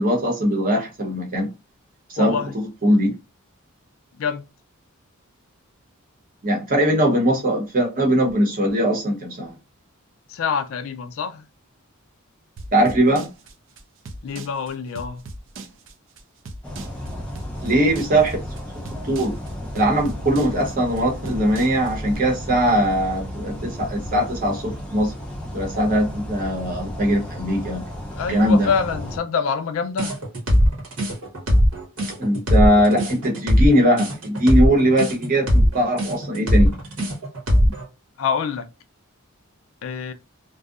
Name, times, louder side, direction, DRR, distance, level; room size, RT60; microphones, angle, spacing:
voice 1, 0.0-1.5 2.1-2.4 2.8-3.1 6.4-9.5 12.7-13.3 17.6-18.4 19.1-19.3 19.7-25.1 25.5-27.8 28.3-28.7 32.2-36.7 37.6-37.8, equal, 40° right, 0.8 m, -20 dB
voice 2, 2.2-2.5 4.2-4.4 10.3-11.4 14.2-15.2 28.1-30.2 38.2-38.7 39.8-40.1, left 6 dB, 65° left, 0.4 m, -26 dB
sound 1, 12.6-22.2, right 2 dB, 60° right, 0.4 m, -38 dB
sound 2, 16.6-29.2, equal, 5° left, 0.5 m, -33 dB
sound 3, 30.0-37.8, equal, 80° right, 1.0 m, -19 dB
2.6 x 2.0 x 2.3 m
head